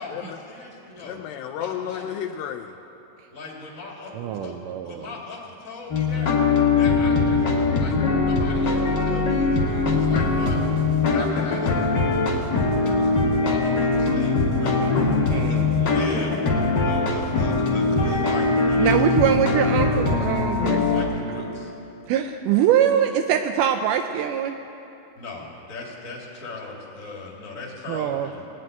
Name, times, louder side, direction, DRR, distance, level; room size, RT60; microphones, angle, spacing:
voice 1, 0.0-1.2 1.6-2.1 3.3-6.3 6.8-10.6 11.0-14.9 15.3-16.4 16.8-19.3 20.9-21.7 25.1-28.5, left 2 dB, 25° left, -2 dB, 2.0 m, -38 dB
voice 2, 1.0-2.8, left 10 dB, 80° left, 6 dB, 2.2 m, -32 dB
voice 3, 4.1-5.1 9.1-9.2 15.3-15.8 18.8-20.8 22.1-24.6 27.9-28.3, right 9 dB, 85° right, 6 dB, 1.9 m, -23 dB
sound 1, 5.9-21.0, left 3 dB, 50° left, 1.4 m, -21 dB
19.5 x 7.6 x 9.1 m, 2.9 s
omnidirectional pair, 4.2 m